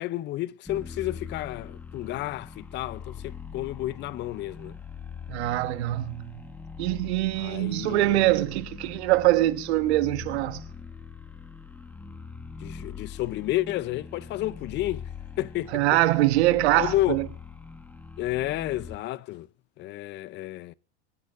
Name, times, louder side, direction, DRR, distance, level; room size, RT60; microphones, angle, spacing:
voice 1, 0.0-4.8 7.4-8.3 12.6-15.1 15.4-15.8 16.8-17.2 18.2-19.5 19.8-20.7, left 16 dB, 35° left, 0.6 m, -31 dB
sound 1, 0.7-19.0, left 5 dB, 5° left, 1.8 m, -42 dB
voice 2, 5.3-6.5 6.8-10.6 15.7-17.3, right 16 dB, 70° right, 1.3 m, -23 dB
25.5 x 12.5 x 2.5 m
supercardioid pair, 130°, 34 cm